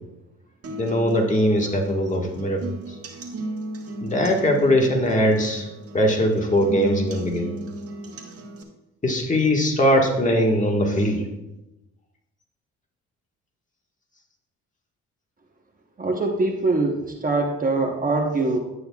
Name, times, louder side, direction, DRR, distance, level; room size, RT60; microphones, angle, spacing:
sound 1, 0.6-8.6, right 1 dB, 50° right, 1.5 m, -35 dB
voice 1, 0.7-3.0 4.0-5.7 5.9-7.5 9.0-11.2, equal, 25° left, 0 dB, 1.6 m, -21 dB
voice 2, 16.0-18.6, right 3 dB, 30° right, 2 dB, 1.0 m, -23 dB
11.0 x 8.8 x 2.3 m, 0.98 s
cardioid pair, 90°, 30 cm